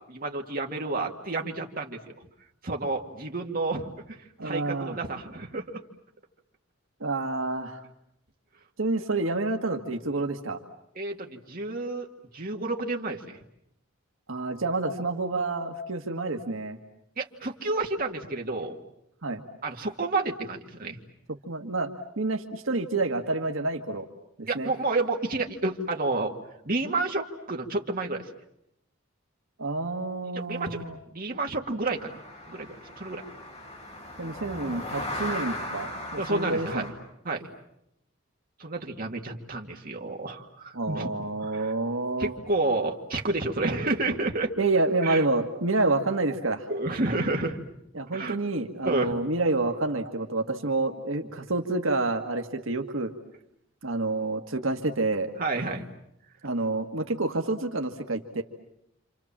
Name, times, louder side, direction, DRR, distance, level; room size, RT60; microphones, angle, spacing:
voice 1, 0.1-2.1 2.6-4.2 4.4-5.8 11.0-12.1 12.3-13.2 17.2-18.8 19.6-21.0 24.5-26.3 26.6-28.2 30.5-30.8 31.1-32.2 32.5-32.7 33.0-33.2 36.2-36.8 37.2-37.4 38.6-41.1 41.4-41.7 42.2-44.5 45.0-45.2 46.7-47.6 48.1-48.4 48.8-49.1 55.4-55.9, right 2 dB, 45° right, 1 dB, 2.3 m, -30 dB
voice 2, 4.4-4.9 7.0-7.8 8.8-10.6 14.3-16.8 19.2-19.4 21.5-21.9 22.2-24.1 24.4-24.7 29.6-31.0 34.2-36.9 40.7-42.3 44.6-46.7 47.9-53.1 53.8-55.3 56.4-58.4, right 2 dB, 80° right, 4 dB, 1.7 m, -28 dB
sound 1, 31.8-36.9, left 1 dB, 35° left, 6.7 m, -37 dB
28.5 x 27.5 x 7.5 m, 0.79 s
head